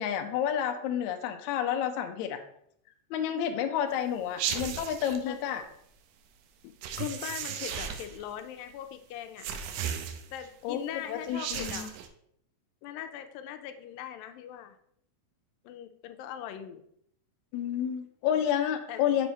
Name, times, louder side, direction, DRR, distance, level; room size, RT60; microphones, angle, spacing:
voice 1, 0.0-2.4 3.1-5.6 10.6-11.9 17.5-19.3, left 9 dB, 75° left, 5 dB, 1.8 m, -30 dB
sound 1, 4.4-5.2 6.8-8.2 9.4-10.5 11.2-12.1, right 8 dB, 80° right, 2.2 m, -35 dB
voice 2, 6.6-9.5 10.3-12.0 12.8-14.8 15.6-16.8 18.9-19.2, left 10 dB, 90° left, 9 dB, 2.3 m, -40 dB
6.7 x 4.8 x 4.0 m, 0.70 s
omnidirectional pair, 3.9 m